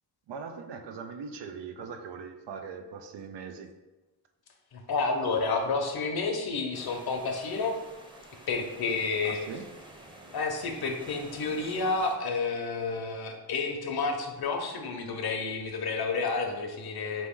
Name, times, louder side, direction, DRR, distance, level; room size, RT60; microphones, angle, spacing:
voice 1, 0.3-3.7 9.2-9.6, right 5 dB, 85° right, 6 dB, 0.6 m, -40 dB
voice 2, 4.7-7.7 8.5-9.4 10.3-17.3, left 4 dB, 65° left, 4 dB, 0.8 m, -30 dB
sound 1, 6.7-12.2, right 1 dB, 10° right, 0.7 m, -50 dB
4.1 x 3.0 x 3.6 m, 1.1 s
cardioid pair, 75°, 41 cm